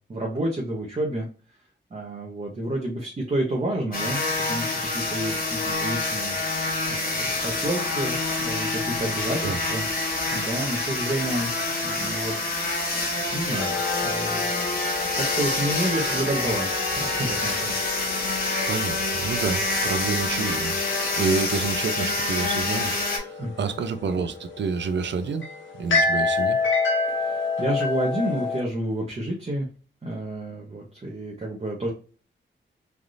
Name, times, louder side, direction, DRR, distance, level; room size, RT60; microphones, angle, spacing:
voice 1, 0.1-1.3 1.9-4.2 4.5-9.8 10.3-11.5 11.8-12.5 12.9-14.5 15.1-17.7 23.4-23.7 27.1-29.7 30.0-31.9, right 1 dB, 35° right, 0.7 m, -30 dB
sound 1, 3.9-23.2, left 2 dB, 50° left, 0.9 m, -27 dB
sound 2, 13.6-28.6, left 4 dB, 85° left, 1.0 m, -30 dB
voice 2, 18.7-25.5 25.8-26.6, right 5 dB, 65° right, 0.4 m, -29 dB
3.3 x 2.4 x 2.6 m
wide cardioid pair, 150°, 20 cm